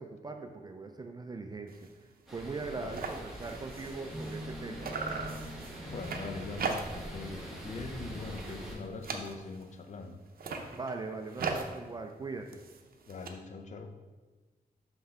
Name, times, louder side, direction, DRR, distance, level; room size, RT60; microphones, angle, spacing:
voice 1, 0.0-1.9 2.3-5.1 10.8-12.6, right 3 dB, 25° right, 5 dB, 0.3 m, -40 dB
sound 1, 1.7-1.9 2.3-2.4 2.6-4.6 4.8-7.2 7.5-7.9 8.2-9.7 10.3-13.3, right 4 dB, 65° right, 0.6 m, -39 dB
sound 2, 2.3-8.8, right 1 dB, ahead, 1.4 m, -44 dB
voice 2, 2.8-3.1 5.8-10.2 13.1-13.9, left 4 dB, 50° left, 5 dB, 0.6 m, -42 dB
sound 3, 4.1-9.4, equal, 20° left, 0.9 m, -46 dB
5.7 x 5.4 x 3.4 m, 1.3 s
wide cardioid pair, 155°, 16 cm